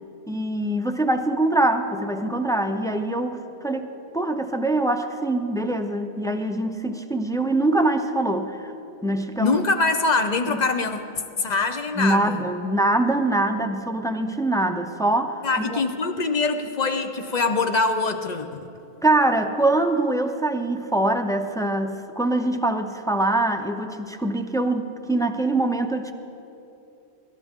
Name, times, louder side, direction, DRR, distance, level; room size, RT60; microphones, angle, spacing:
voice 1, 0.3-3.9 4.1-8.7 9.0-9.6 10.5-10.6 12.0-15.8 19.0-26.1, right 2 dB, 5° left, 5 dB, 0.5 m, -23 dB
voice 2, 9.4-11.0 11.4-12.4 15.4-18.6, left 3 dB, 45° left, 7 dB, 0.9 m, -23 dB
25.5 x 13.0 x 3.7 m, 3.0 s
omnidirectional pair, 1.1 m